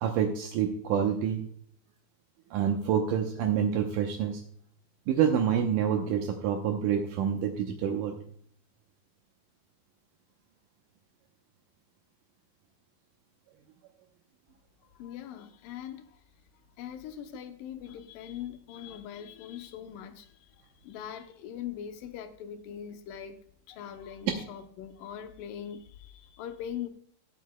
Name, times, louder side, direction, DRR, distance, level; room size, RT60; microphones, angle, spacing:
voice 1, 0.0-1.4 2.5-4.4 5.1-8.2, right 8 dB, 80° right, 2 dB, 1.9 m, -27 dB
voice 2, 15.0-16.0 16.8-20.3 20.8-23.4 23.7-26.9, left 9 dB, 80° left, 7 dB, 1.9 m, -41 dB
18.0 x 8.4 x 2.2 m, 0.62 s
omnidirectional pair, 4.8 m